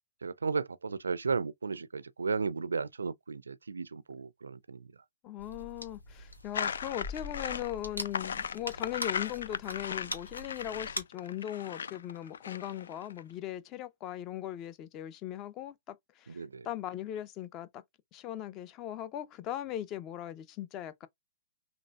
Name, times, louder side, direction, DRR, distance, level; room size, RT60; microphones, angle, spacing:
voice 1, 0.2-4.8 16.3-16.7, right 4 dB, 75° right, 0.4 m, -34 dB
voice 2, 5.2-17.8 18.1-21.1, left 12 dB, 30° left, 0.6 m, -39 dB
sound 1, 5.4-11.0, left 2 dB, 85° left, 1.3 m, -43 dB
sound 2, 6.5-13.2, left 7 dB, 65° left, 0.3 m, -37 dB
5.9 x 2.5 x 2.3 m
figure-of-eight pair, 115°, 0 cm